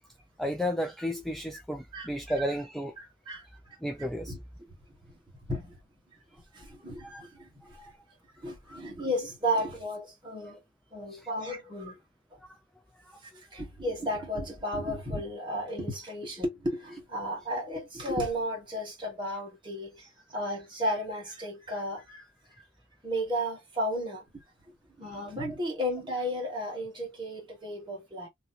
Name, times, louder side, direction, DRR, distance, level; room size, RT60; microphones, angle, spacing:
voice 1, 0.4-3.0 3.8-4.4 7.0-7.2 7.7-7.9 8.7-8.8 11.1-11.2 12.5-12.6, equal, ahead, 0.4 m, -33 dB
voice 2, 3.0-4.4 4.7-4.8 5.1-5.2 5.5-5.8 6.3-7.9 8.4-10.6 10.9-12.0 12.3-12.4 13.2-20.0 20.3-22.2 23.0-24.4 25.0-28.3, equal, 25° right, 1.7 m, -34 dB
3.0 x 2.9 x 2.7 m
head